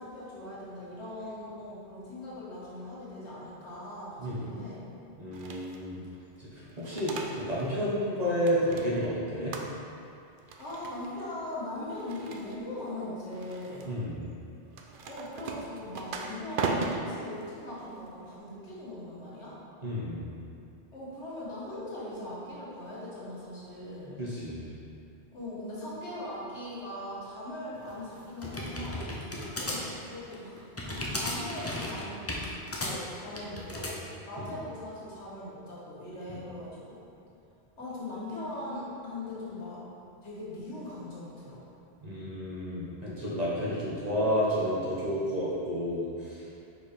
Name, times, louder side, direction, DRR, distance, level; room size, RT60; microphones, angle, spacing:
voice 1, 0.0-4.8 10.6-14.1 15.0-19.6 20.9-24.2 25.3-29.1 29.6-30.6 30.9-32.4 32.8-37.0 37.8-39.8 40.2-41.6, left 1 dB, 90° left, -7 dB, 1.8 m, -40 dB
voice 2, 4.2-4.5 5.2-6.0 6.4-9.6 13.9-14.2 19.8-20.3 24.2-24.7 34.4-34.5 42.0-46.5, equal, 35° right, -8 dB, 1.3 m, -31 dB
sound 1, 5.3-5.9 6.6-7.8 8.0-9.1 9.5-10.0 10.4-11.2 11.9-12.8 13.3-13.9 14.7-18.4, right 4 dB, 60° right, 0.7 m, -38 dB
sound 2, 27.8-34.0, left 1 dB, 20° left, 0.5 m, -35 dB
5.2 x 4.7 x 4.3 m, 2.5 s
omnidirectional pair, 1.1 m